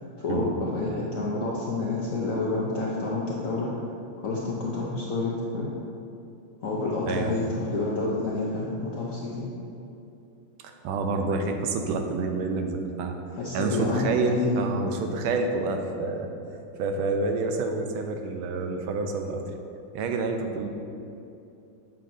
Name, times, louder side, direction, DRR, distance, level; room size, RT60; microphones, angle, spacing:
voice 1, 0.2-3.8 4.2-5.7 6.6-9.5 13.4-14.6, left 3 dB, 85° left, -5 dB, 0.7 m, -29 dB
voice 2, 7.1-7.6 10.6-13.1 13.5-16.3 16.8-19.4 19.9-20.7, right 3 dB, 80° right, 5 dB, 1.4 m, -28 dB
7.5 x 5.7 x 2.6 m, 2.7 s
omnidirectional pair, 2.3 m